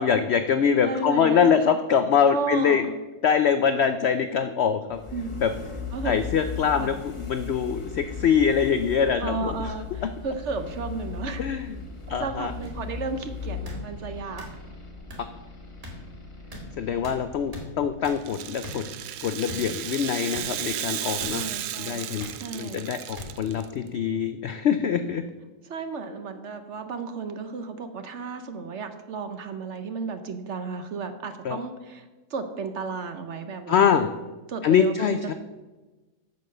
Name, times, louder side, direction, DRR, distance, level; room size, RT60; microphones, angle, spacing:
voice 1, 0.0-2.8 3.2-5.0 5.4-5.5 6.0-9.7 10.0-10.1 11.4-11.8 12.1-12.5 16.8-18.9 19.2-21.5 21.8-22.3 22.5-25.2 31.4-31.6 33.7-34.1 34.6-35.3, left 7 dB, 90° left, 10 dB, 0.5 m, -24 dB
voice 2, 0.8-1.5 2.3-2.9 5.1-5.4 5.9-6.2 6.7-7.0 9.2-11.4 12.1-14.6 21.3-22.1 22.4-22.9 25.6-34.0 34.5-35.3, right 4 dB, 55° right, 8 dB, 0.8 m, -33 dB
sound 1, 4.9-18.8, left 5 dB, 20° left, 1.2 m, -38 dB
sound 2, 12.6-12.7 13.6-13.8 14.4-14.5 15.1-15.2 15.8-15.9 16.5-16.6 17.0-17.2 17.5-17.6 18.0-18.2 18.6-18.8 19.5-19.6 20.3-20.4 21.2-21.3 22.2-22.4 23.2-23.3 24.1-24.3, left 1 dB, 25° right, 1.9 m, -39 dB
Rattle (instrument), 18.2-23.6, right 11 dB, 80° right, 1.2 m, -34 dB
8.3 x 6.8 x 6.5 m, 1.2 s
omnidirectional pair, 1.7 m